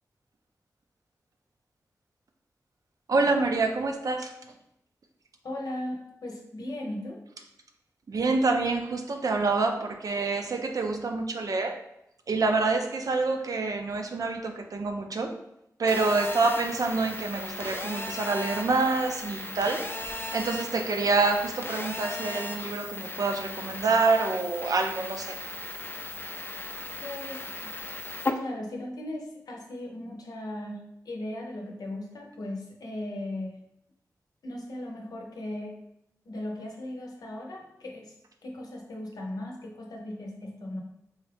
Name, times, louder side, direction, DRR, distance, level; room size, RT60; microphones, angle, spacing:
voice 1, 3.1-4.3 8.1-11.7 12.3-15.3 15.8-19.8 20.3-25.3, right 3 dB, 65° right, 4 dB, 0.5 m, -27 dB
voice 2, 5.4-5.9 6.2-7.2 27.0-27.7 28.3-33.6 34.4-35.8 36.2-38.1 38.4-40.8, left 1 dB, 80° left, 1 dB, 0.7 m, -37 dB
Telephone, 15.9-28.3, left 2 dB, 35° left, 0.4 m, -36 dB
4.0 x 2.3 x 3.3 m, 0.81 s
cardioid pair, 55°, 7 cm